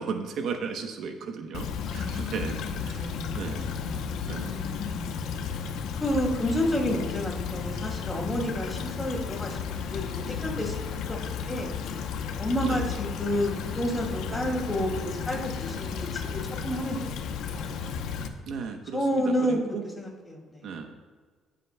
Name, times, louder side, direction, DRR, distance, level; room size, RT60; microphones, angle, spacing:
voice 1, 0.0-3.8 4.3-4.8 12.6-12.9 14.3-14.6 18.5-19.8 20.6-20.9, right 5 dB, 70° right, 5 dB, 0.9 m, -36 dB
Stream / Trickle dribble, 1.5-18.3, left 6 dB, 80° left, 0.8 m, -33 dB
voice 2, 1.9-5.0 6.0-10.8 11.1-11.7 12.4-17.2 17.5-17.7 18.9-19.6 20.0-20.7, equal, 15° left, 0 dB, 2.5 m, -31 dB
19.0 x 7.6 x 2.3 m, 1.5 s
cardioid pair, 120°, 0 cm